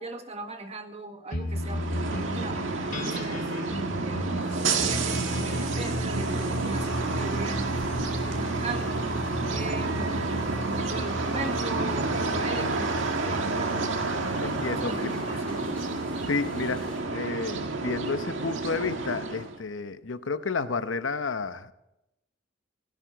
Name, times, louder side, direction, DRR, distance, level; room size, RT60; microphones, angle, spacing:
voice 1, 0.0-2.6 3.0-3.5 4.0-4.3 4.7-7.7 8.3-9.1 9.5-10.3 10.6-13.9 14.8-15.9, right 3 dB, 35° right, 6 dB, 1.7 m, -39 dB
sound 1, 1.3-16.0, equal, 45° left, 2.8 m, -35 dB
sound 2, 1.5-19.6, right 3 dB, 80° right, 1.8 m, -30 dB
sound 3, 4.4-17.0, left 1 dB, 5° left, 5.9 m, -48 dB
voice 2, 14.4-15.2 16.3-21.7, left 4 dB, 75° left, 11 dB, 0.9 m, -31 dB
17.0 x 16.5 x 4.6 m, 0.88 s
head